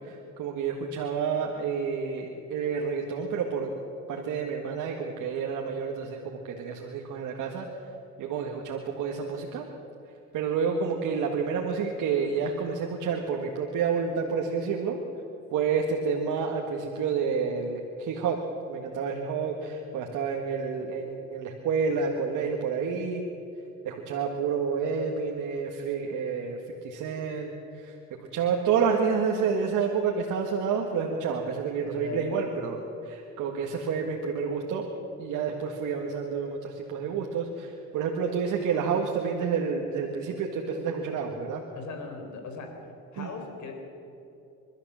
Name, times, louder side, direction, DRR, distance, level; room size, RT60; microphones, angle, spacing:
voice 1, 0.0-3.7 4.1-7.7 8.2-9.7 10.3-15.0 15.5-18.4 18.7-23.2 23.8-26.6 26.8-28.0 28.3-34.9 35.2-41.6 43.2-43.3, right 6 dB, 85° right, 1 dB, 1.8 m, -29 dB
voice 2, 31.8-32.4 41.7-42.7 43.1-43.7, left 4 dB, 70° left, 4 dB, 4.2 m, -39 dB
28.0 x 13.0 x 7.5 m, 2.8 s
cardioid pair, 90°, 30 cm